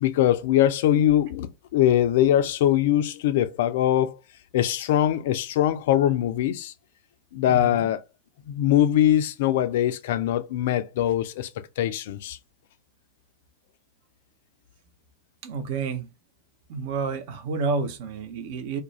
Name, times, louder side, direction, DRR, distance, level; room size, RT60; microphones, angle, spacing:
voice 1, 0.0-4.2 4.5-6.7 7.3-8.0 8.5-11.5 11.8-12.4, left 12 dB, 55° left, 0.3 m, -22 dB
voice 2, 7.5-7.9 15.4-16.1 16.7-18.8, right 4 dB, 50° right, 0.5 m, -30 dB
2.4 x 2.2 x 2.9 m
figure-of-eight pair, 90°, 0 cm